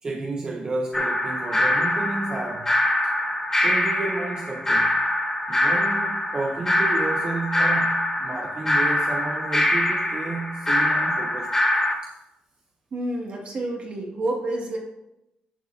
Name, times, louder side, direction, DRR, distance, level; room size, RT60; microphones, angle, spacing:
voice 1, 0.0-2.7 3.6-5.0 5.5-11.6 12.0-12.1, right 3 dB, 35° right, 0.8 m, -31 dB
sound 1, 0.9-12.0, left 1 dB, 15° left, 1.3 m, -23 dB
voice 2, 12.9-14.8, right 1 dB, 50° right, 2.2 m, -29 dB
10.5 x 6.6 x 2.8 m
cardioid pair, 95°, 3 cm